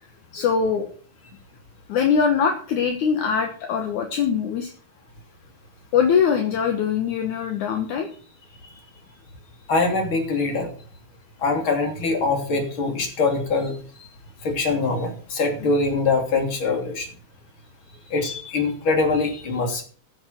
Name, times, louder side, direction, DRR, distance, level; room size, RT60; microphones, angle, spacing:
voice 1, 0.3-0.9 1.9-4.7 5.9-8.1, left 6 dB, 65° left, 4 dB, 2.7 m, -22 dB
voice 2, 9.7-10.7 11.4-13.8 14.4-17.1 18.1-19.8, left 3 dB, 35° left, 3 dB, 3.6 m, -23 dB
15.0 x 7.7 x 6.7 m, 0.43 s
omnidirectional pair, 3.9 m